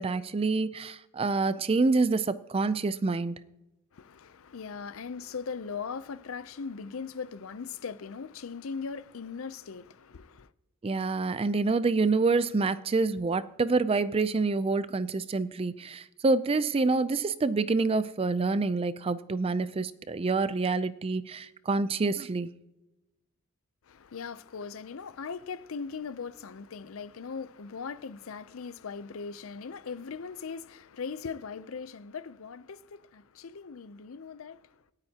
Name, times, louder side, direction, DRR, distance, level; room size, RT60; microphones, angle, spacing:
voice 1, 0.0-3.4 10.8-22.5, right 3 dB, 25° right, 0.4 m, -27 dB
voice 2, 3.9-10.5 23.8-34.8, left 5 dB, 65° left, 0.5 m, -39 dB
26.5 x 8.9 x 2.9 m
head